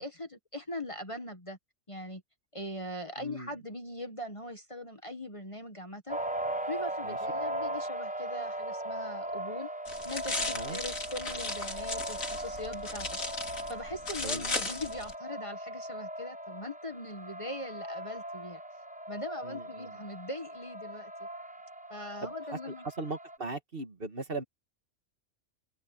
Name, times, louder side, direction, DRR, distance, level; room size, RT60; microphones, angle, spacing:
voice 1, 0.0-1.6 1.9-2.2 2.5-6.2 6.7-9.7 10.0-18.6 19.1-21.1 21.9-22.8, left 1 dB, 25° left, 1.6 m, -41 dB
voice 2, 3.2-3.5 7.0-7.2 10.5-10.8 14.2-14.5 19.4-20.0 22.2-22.3 22.7-24.4, right 3 dB, 45° right, 2.0 m, -39 dB
sound 1, 6.1-23.4, right 1 dB, 10° right, 0.6 m, -39 dB
sound 2, 9.9-15.1, left 2 dB, 85° left, 4.2 m, -36 dB
omnidirectional pair, 1.4 m